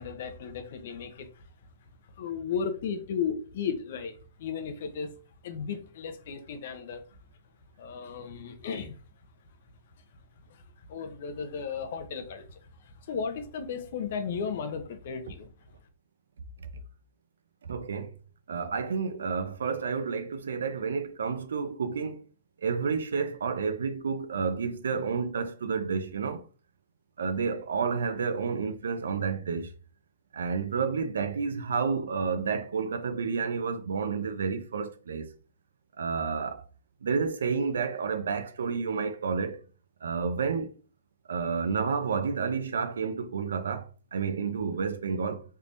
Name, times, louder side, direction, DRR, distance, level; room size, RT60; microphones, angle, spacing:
voice 1, 0.0-1.4 2.2-5.1 5.4-7.0 7.8-9.0 10.5-15.5, left 6 dB, 60° left, 0.7 m, -35 dB
voice 2, 17.6-18.2 18.5-22.2 22.6-26.4 27.2-29.7 30.3-35.3 36.0-36.6 37.0-39.6 40.0-40.7 41.3-45.4, right 5 dB, 90° right, 0.6 m, -30 dB
3.4 x 3.3 x 2.6 m
hypercardioid pair, 150°, 0 cm